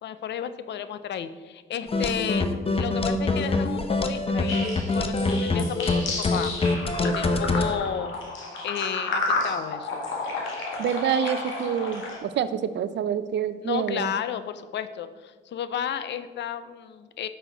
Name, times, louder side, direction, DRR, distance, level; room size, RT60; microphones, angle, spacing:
voice 1, 0.0-2.5 2.7-6.5 7.0-8.1 8.6-10.1 13.6-17.3, left 9 dB, 60° left, 12 dB, 0.6 m, -32 dB
sound 1, 1.9-7.7, left 3 dB, 30° left, 0.8 m, -24 dB
sound 2, 4.5-12.2, left 3 dB, 80° left, 1.9 m, -32 dB
voice 2, 10.8-14.1, right 8 dB, 65° right, 13 dB, 0.5 m, -27 dB
9.1 x 6.3 x 3.9 m, 1.4 s
cardioid pair, 90°, 20 cm